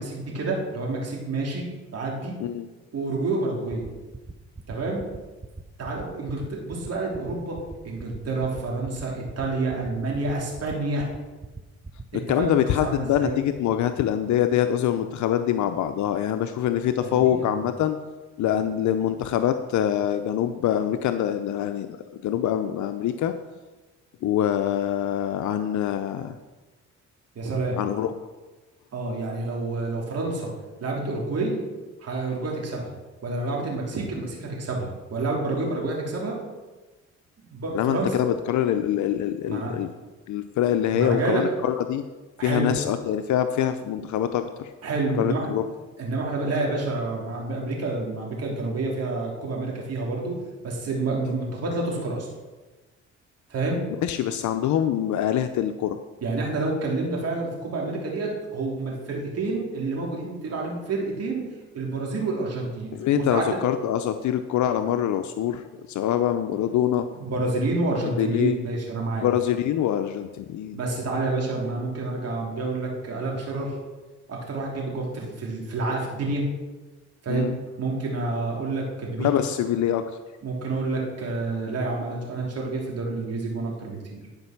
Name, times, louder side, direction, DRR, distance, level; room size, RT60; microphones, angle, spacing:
voice 1, 0.0-1.6 1.9-2.3 2.9-3.9 4.7-5.0 5.8-7.6 7.8-11.0 12.1-13.3 17.0-17.5 27.3-27.8 28.9-30.5 30.8-31.6 32.0-32.9 33.2-36.4 37.5-38.2 39.5-39.7 40.9-41.4 42.4-42.7 44.8-45.5 46.0-50.4 50.6-52.3 53.5-53.8 56.2-61.5 61.7-62.9 63.3-63.4 67.1-69.3 70.7-73.7 74.3-76.4 77.2-77.5 77.8-79.3 80.4-84.2, right 3 dB, 55° right, -2 dB, 3.1 m, -28 dB
sound 1, 3.7-13.6, right 3 dB, 10° right, 0.7 m, -39 dB
voice 2, 12.1-18.0 18.4-22.0 22.2-23.3 24.2-26.4 27.8-28.1 37.7-39.9 40.3-42.0 42.4-44.7 45.2-45.6 54.0-56.0 62.9-65.6 65.9-67.1 68.2-68.6 69.2-70.8 77.3-77.6 79.2-80.0, left 10 dB, 70° left, 8 dB, 0.6 m, -24 dB
11.5 x 5.3 x 5.8 m, 1.2 s
cardioid pair, 90°, 30 cm